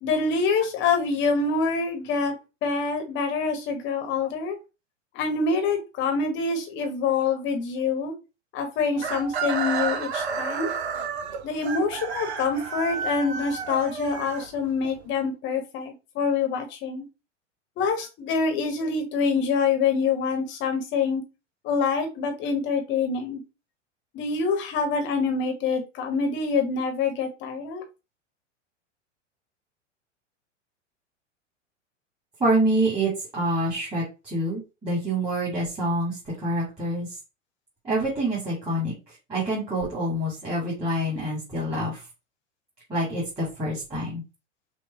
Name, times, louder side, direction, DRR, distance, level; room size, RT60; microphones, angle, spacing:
voice 1, 0.0-2.3 2.6-4.6 5.1-8.1 8.5-10.7 11.4-17.0 17.8-21.2 21.6-23.4 24.1-27.8, left 4 dB, 30° left, 4 dB, 1.1 m, -26 dB
Chicken rooster, 9.0-14.9, right 6 dB, 60° right, 0.8 m, -31 dB
voice 2, 32.4-37.2 37.8-42.1 42.9-44.2, right 1 dB, 15° right, -6 dB, 2.5 m, -27 dB
6.0 x 2.3 x 3.4 m, 0.28 s
figure-of-eight pair, 90°, 37 cm